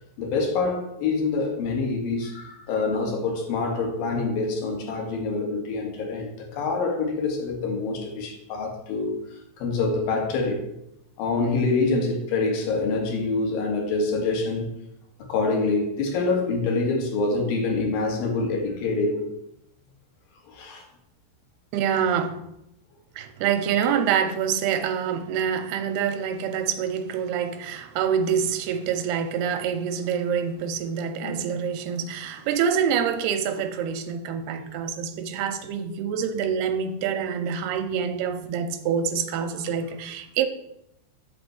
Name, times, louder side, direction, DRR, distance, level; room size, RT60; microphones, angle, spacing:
voice 1, 0.2-10.7 11.2-14.7 15.2-19.3 20.5-20.9 31.2-31.5, left 3 dB, 60° left, 3.2 m, -26 dB
voice 2, 21.7-22.5 23.2-40.5, right 7 dB, 80° right, 2.8 m, -26 dB
11.0 x 4.4 x 7.8 m
omnidirectional pair, 4.7 m